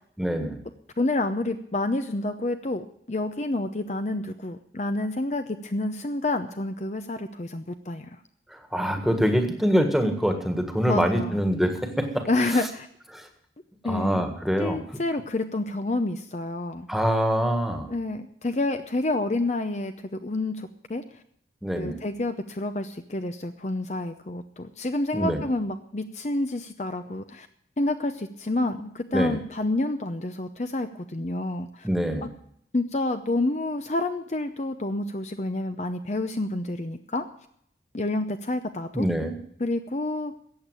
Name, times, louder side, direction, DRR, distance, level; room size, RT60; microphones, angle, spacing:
voice 1, 0.2-0.6 8.5-12.3 13.1-13.3 13.9-14.8 16.9-17.9 21.6-22.0 25.1-25.4 29.1-29.4 31.8-32.3 38.9-39.3, equal, ahead, 5 dB, 1.6 m, -24 dB
voice 2, 1.0-8.1 10.9-11.5 12.3-12.9 13.8-14.3 14.6-16.9 17.9-21.0 21.8-27.5 27.8-31.9 32.2-32.3 32.7-37.3 37.9-39.1 39.6-40.3, left 2 dB, 40° left, 8 dB, 0.7 m, -29 dB
14.5 x 8.6 x 9.0 m, 0.69 s
head